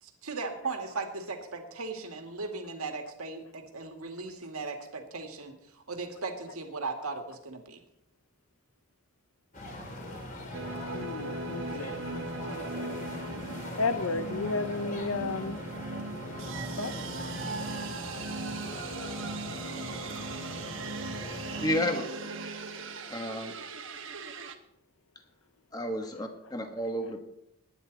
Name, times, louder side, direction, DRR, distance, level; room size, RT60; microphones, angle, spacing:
voice 1, 0.0-7.8, right 3 dB, 90° right, 2.1 m, -37 dB
sound 1, 9.5-21.7, left 1 dB, 35° left, 2.8 m, -41 dB
sound 2, 10.5-24.5, right 3 dB, 60° right, 1.3 m, -39 dB
voice 2, 10.9-12.0 13.8-15.6 16.8-17.0 26.0-26.1, left 3 dB, 75° left, 0.7 m, -32 dB
voice 3, 21.6-22.1 23.1-23.6 25.7-27.2, equal, 15° left, 1.3 m, -31 dB
20.0 x 10.0 x 4.0 m
head